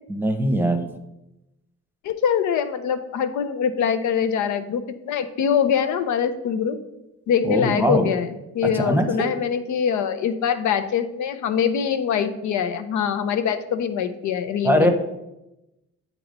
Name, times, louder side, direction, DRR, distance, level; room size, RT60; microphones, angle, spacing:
voice 1, 0.1-0.8 7.4-8.1 8.7-9.1 14.6-14.9, equal, 5° right, 6 dB, 0.8 m, -20 dB
voice 2, 2.0-6.8 7.3-8.3 8.5-14.9, left 7 dB, 75° left, 9 dB, 0.6 m, -23 dB
8.2 x 3.0 x 5.2 m, 0.94 s
cardioid pair, 90°, 30 cm